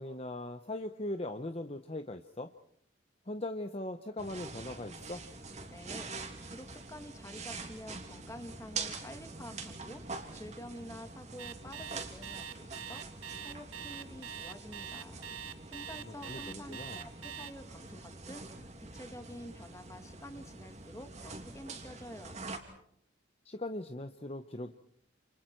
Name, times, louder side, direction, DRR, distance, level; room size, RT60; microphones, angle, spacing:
voice 1, 0.0-2.5 3.3-5.2 16.0-17.0 23.4-24.7, left 1 dB, 30° left, 8 dB, 0.9 m, -40 dB
sound 1, 4.2-22.6, right 3 dB, 35° right, 3.0 m, -45 dB
voice 2, 5.7-6.1 6.4-15.2 15.7-22.4, left 1 dB, 15° left, 7 dB, 2.0 m, -49 dB
Alarm, 11.4-17.5, right 8 dB, 85° right, 1.2 m, -43 dB
29.5 x 29.0 x 4.6 m, 0.68 s
head